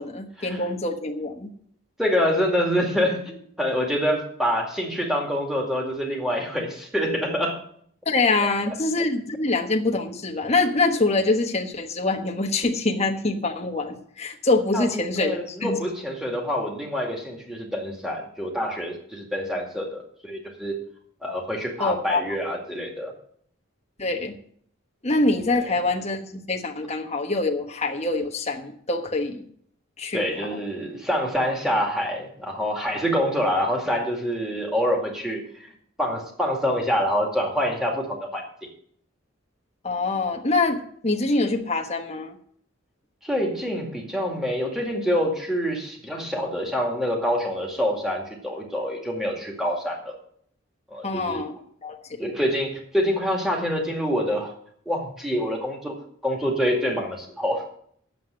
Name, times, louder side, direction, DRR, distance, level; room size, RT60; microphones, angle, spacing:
voice 1, 0.0-1.5 8.1-15.8 21.8-22.2 24.0-24.3 25.0-29.5 30.0-30.2 30.5-30.6 39.8-42.4 51.0-51.5 51.8-52.0, left 2 dB, 30° left, 3 dB, 1.2 m, -25 dB
voice 2, 2.0-7.6 8.4-8.5 14.7-20.8 21.2-23.1 25.5-25.6 30.1-35.7 36.0-38.4 43.2-50.2 50.9-51.4 52.2-54.5 54.9-55.9 56.2-57.6, equal, ahead, 0 dB, 2.2 m, -26 dB
9.4 x 7.5 x 7.6 m, 0.63 s
head